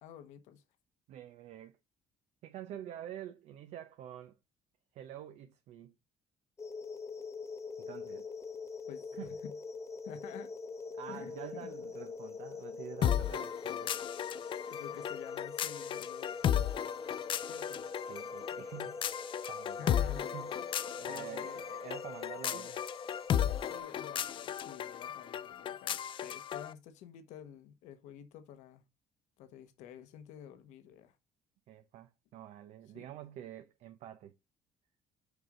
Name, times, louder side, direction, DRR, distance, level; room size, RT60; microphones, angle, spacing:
voice 1, 0.0-0.6 8.9-9.6 10.0-10.5 11.1-11.3 11.6-11.7 14.7-16.5 17.4-17.9 19.7-20.3 21.0-21.6 22.5-22.7 23.7-28.8 29.4-31.2 32.9-33.1, left 9 dB, 85° left, 1.2 m, -50 dB
voice 2, 1.1-1.8 2.4-4.4 4.9-5.9 7.8-8.2 9.1-9.4 11.0-13.9 18.1-19.2 19.5-20.5 21.0-22.8 31.7-34.3, right 11 dB, 70° right, 0.8 m, -47 dB
sound 1, 6.6-23.8, left 4 dB, 25° left, 0.9 m, -44 dB
sound 2, 13.0-26.7, left 10 dB, 45° left, 0.5 m, -35 dB
6.6 x 5.1 x 3.8 m
cardioid pair, 120°, 12 cm